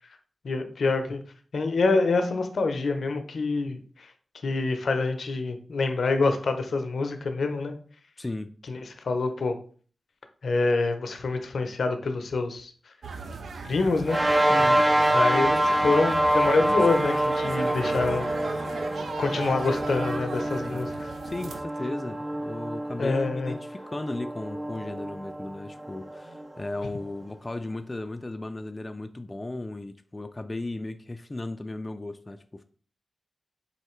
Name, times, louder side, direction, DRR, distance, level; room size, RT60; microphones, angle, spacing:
voice 1, 0.4-1.2 1.5-4.1 4.4-7.8 8.7-9.6 10.4-12.7 13.6-14.2 15.1-18.3 18.6-18.7 19.2-20.9 23.0-23.6, left 3 dB, 80° left, 7 dB, 0.5 m, -26 dB
voice 2, 8.2-8.5 14.5-14.8 20.7-20.8 21.2-32.6, left 2 dB, 30° left, 8 dB, 0.3 m, -36 dB
sound 1, 13.0-21.6, right 4 dB, 80° right, 0.4 m, -38 dB
sound 2, 14.1-26.8, right 1 dB, 30° right, 0.6 m, -26 dB
4.1 x 3.2 x 3.0 m, 0.44 s
cardioid pair, 45°, 0 cm